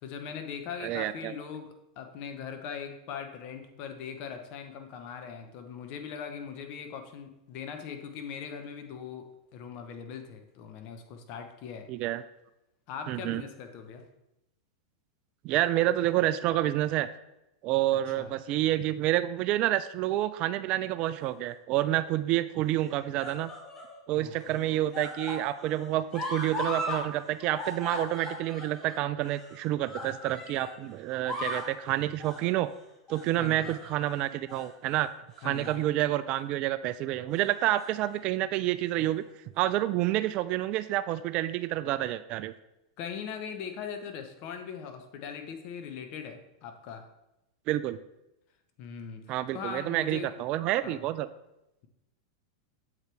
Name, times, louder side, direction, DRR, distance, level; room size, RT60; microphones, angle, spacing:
voice 1, 0.0-9.3 9.5-11.9 12.9-14.1 17.9-18.3 24.1-24.7 33.4-33.7 35.4-35.9 43.0-47.0 48.8-50.3 50.8-51.0, left 7 dB, 50° left, 6 dB, 0.9 m, -40 dB
voice 2, 0.8-1.3 11.9-12.2 13.1-13.4 15.4-17.1 17.6-23.5 24.1-32.7 33.1-35.1 35.4-39.2 39.6-42.5 47.7-48.0 49.3-51.3, right 14 dB, 45° right, 14 dB, 0.3 m, -28 dB
sound 1, 21.2-21.8 22.7-24.0 24.3-27.1 27.3-30.8 31.1-31.7 32.2-32.5 33.1-34.1 34.5-34.7 35.3-35.9 36.2-36.4 37.5-38.2 39.0-39.1, left 1 dB, 20° left, 1.4 m, -39 dB
7.7 x 4.6 x 3.4 m, 0.89 s
hypercardioid pair, 110°, 2 cm